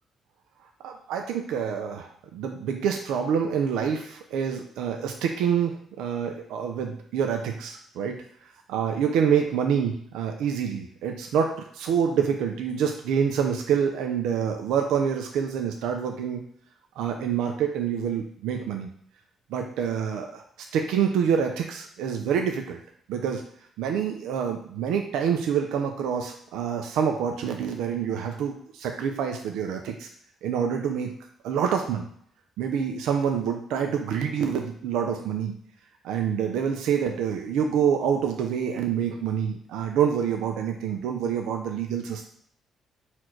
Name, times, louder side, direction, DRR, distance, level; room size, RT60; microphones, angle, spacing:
voice 1, 0.8-8.1 8.7-16.4 17.0-18.9 19.5-20.4 20.7-22.8 23.1-23.4 23.8-30.1 30.4-31.1 31.4-32.0 32.6-35.5 36.0-42.3, right 7 dB, 90° right, 3 dB, 0.5 m, -27 dB
4.3 x 2.5 x 4.5 m, 0.64 s
cardioid pair, 90°, 0 cm